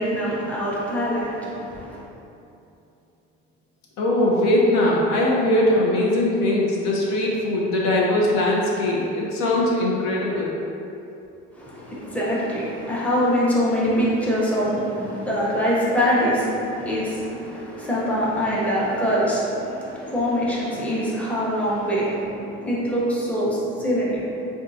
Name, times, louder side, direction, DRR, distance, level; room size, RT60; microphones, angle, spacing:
voice 1, 0.0-2.0 11.5-24.3, equal, 5° left, -7 dB, 0.7 m, -24 dB
voice 2, 4.0-10.6, left 1 dB, 65° left, -3 dB, 0.6 m, -21 dB
3.6 x 2.3 x 2.6 m, 2.8 s
supercardioid pair, 90°, 29 cm